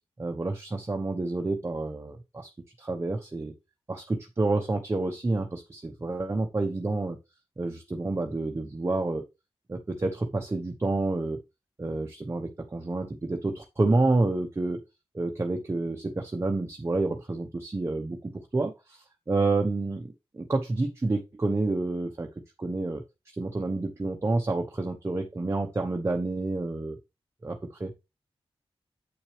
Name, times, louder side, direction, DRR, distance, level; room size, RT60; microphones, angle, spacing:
voice 1, 0.2-2.5 2.8-3.5 3.9-7.2 7.6-9.2 9.7-11.4 11.8-14.8 15.1-20.1 20.3-22.3 22.6-23.0 23.4-27.0 27.4-27.9, right 2 dB, 25° right, 4 dB, 0.8 m, -29 dB
7.9 x 6.0 x 3.2 m, 0.24 s
wide cardioid pair, 115°, 10 cm